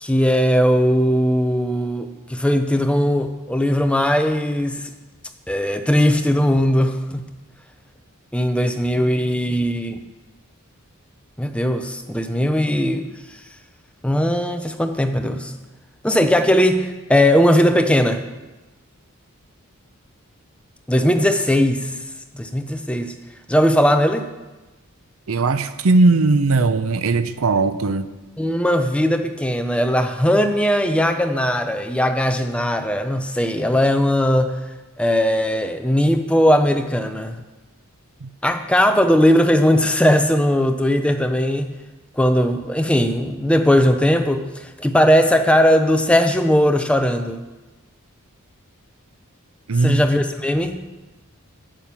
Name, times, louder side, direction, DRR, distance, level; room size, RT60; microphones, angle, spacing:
voice 1, 0.0-4.9 5.5-7.2 8.3-10.0 11.4-13.1 14.0-15.5 16.0-18.2 20.9-21.9 22.3-23.1 23.5-24.3 28.4-34.6 35.0-37.4 38.4-41.7 42.2-47.4 49.8-50.8, equal, 5° left, 7 dB, 0.6 m, -18 dB
voice 2, 25.3-28.1 38.2-38.3 49.7-50.0, right 3 dB, 70° right, 12 dB, 0.6 m, -18 dB
9.2 x 8.9 x 6.9 m, 1.1 s
head